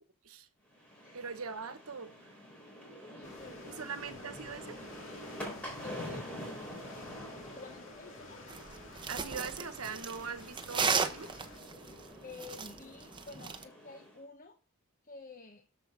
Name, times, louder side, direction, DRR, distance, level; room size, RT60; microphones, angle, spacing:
sound 1, 0.7-14.2, equal, 5° left, 3.5 m, -47 dB
voice 1, 1.1-2.1 3.6-4.8 9.1-11.3, right 5 dB, 80° right, 1.1 m, -41 dB
voice 2, 3.1-4.2 5.8-6.8 7.5-8.5 12.2-14.6 15.0-15.7, left 4 dB, 40° left, 0.8 m, -50 dB
sound 2, 3.2-11.6, left 3 dB, 60° left, 2.0 m, -53 dB
sound 3, 8.5-13.6, right 5 dB, 20° right, 0.7 m, -35 dB
7.6 x 6.9 x 6.0 m
head